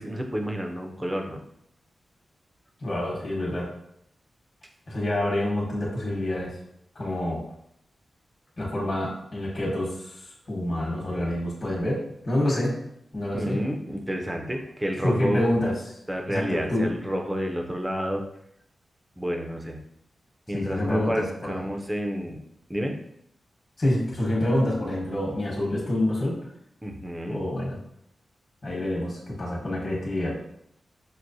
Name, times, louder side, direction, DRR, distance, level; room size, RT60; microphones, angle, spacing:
voice 1, 0.0-1.4 13.3-15.4 16.1-18.2 19.2-19.8 20.5-22.4 22.7-22.9 26.8-27.4, equal, 10° right, 2 dB, 0.5 m, -30 dB
voice 2, 2.8-3.7 4.9-6.5 6.9-7.4 8.6-12.7 13.1-13.6 15.0-16.0 16.3-16.9 20.5-21.7 23.8-26.4 27.3-27.8 28.6-30.3, left 1 dB, 40° left, -5 dB, 1.1 m, -27 dB
6.0 x 2.1 x 2.6 m, 0.74 s
wide cardioid pair, 125°, 0 cm